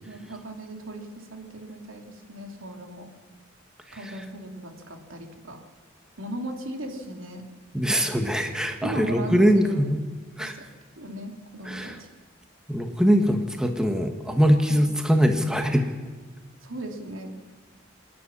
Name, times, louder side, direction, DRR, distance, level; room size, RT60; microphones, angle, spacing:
voice 1, 0.1-3.1 3.9-5.6 6.2-7.4 8.8-9.9 10.4-10.6 11.0-12.1 16.6-17.3, right 1 dB, 85° right, 2 dB, 3.0 m, -37 dB
voice 2, 7.7-10.0 10.4-10.5 11.7-12.0 12.7-15.9, equal, 5° right, 4 dB, 1.3 m, -22 dB
26.5 x 10.0 x 9.9 m, 1.4 s
head